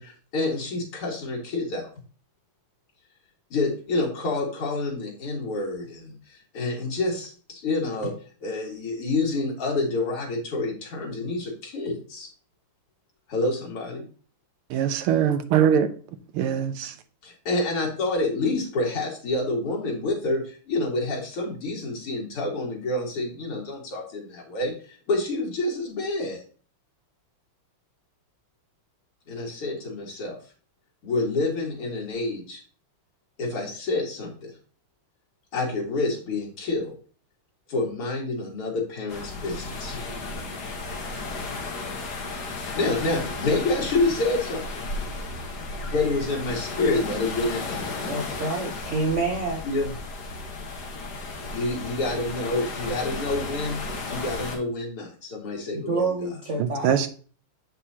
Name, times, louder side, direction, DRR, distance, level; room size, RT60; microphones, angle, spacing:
voice 1, 0.0-1.9 3.5-8.1 8.4-12.3 13.3-14.1 17.2-26.4 29.3-30.4 31.0-32.6 33.4-34.5 35.5-36.9 37.7-40.0 42.6-44.8 45.8-48.1 49.6-49.9 51.5-53.8 54.1-56.3, left 2 dB, 80° left, 2.9 m, -28 dB
voice 2, 14.7-15.9 16.3-16.9 56.6-57.1, right 9 dB, 80° right, 1.6 m, -22 dB
sound 1, 39.1-54.6, left 3 dB, 50° left, 1.7 m, -34 dB
voice 3, 48.1-49.6 55.7-57.0, right 3 dB, 60° right, 0.8 m, -28 dB
7.7 x 6.0 x 2.8 m
omnidirectional pair, 2.4 m